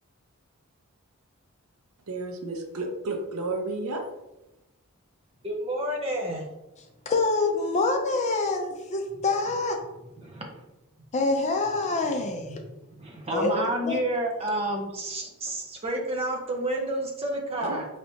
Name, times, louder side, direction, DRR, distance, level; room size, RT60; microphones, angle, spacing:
voice 1, 2.1-4.1 17.5-17.8, right 2 dB, 85° right, 3 dB, 0.7 m, -32 dB
voice 2, 5.4-6.5 10.2-10.5 12.5-12.6 13.0-17.9, right 1 dB, 25° right, 0 dB, 0.7 m, -30 dB
voice 3, 7.1-9.8 11.1-12.6 13.3-14.0, left 3 dB, 30° left, 4 dB, 0.4 m, -26 dB
4.1 x 3.3 x 2.7 m, 0.97 s
head